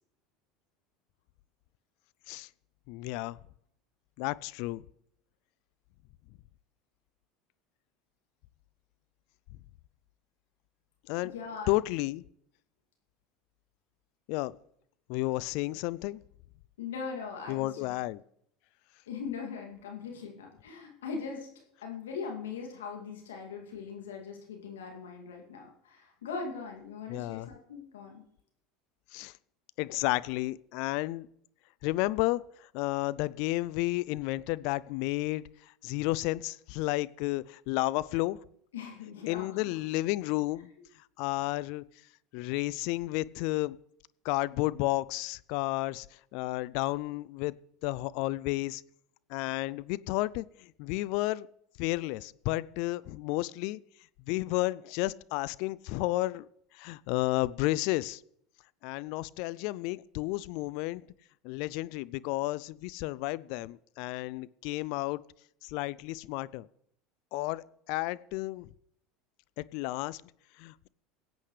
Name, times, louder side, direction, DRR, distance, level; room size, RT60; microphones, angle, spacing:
voice 1, 2.9-3.4 4.2-4.8 11.1-11.3 11.7-12.2 14.3-14.6 15.1-16.2 17.5-18.2 27.1-27.5 29.1-29.3 29.8-31.3 31.8-38.4 39.3-40.7 41.2-41.8 42.3-43.8 44.2-47.5 47.8-48.8 49.3-51.5 51.8-53.8 54.3-56.5 56.7-58.2 58.8-61.1 61.4-65.2 65.6-66.7 67.3-68.7 69.6-70.2 70.6-70.9, left 19 dB, 65° left, 19 dB, 0.4 m, -32 dB
voice 2, 11.2-11.7 16.8-17.9 19.1-21.5 21.8-28.2 38.7-39.7, left 5 dB, 80° left, 1 dB, 2.4 m, -40 dB
20.5 x 8.4 x 3.3 m, 0.70 s
hypercardioid pair, 80°, 0 cm